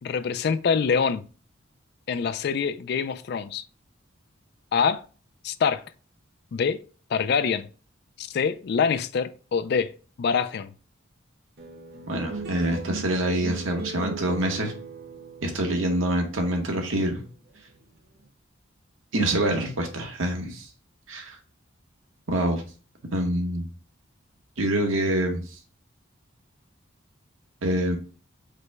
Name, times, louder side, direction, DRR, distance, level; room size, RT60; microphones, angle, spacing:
voice 1, 0.0-1.2 2.1-3.6 4.7-5.0 5.4-5.8 6.5-6.8 7.1-7.7 8.2-9.9 10.2-10.7, left 6 dB, 55° left, 0.3 m, -25 dB
sound 1, 11.6-18.2, right 4 dB, 50° right, 0.8 m, -39 dB
voice 2, 12.1-14.7 15.4-17.2 19.1-20.7 21.1-21.4 22.3-22.6 23.1-23.7 24.6-25.4 27.6-28.0, right 1 dB, 85° right, 1.1 m, -26 dB
5.0 x 2.2 x 4.5 m
head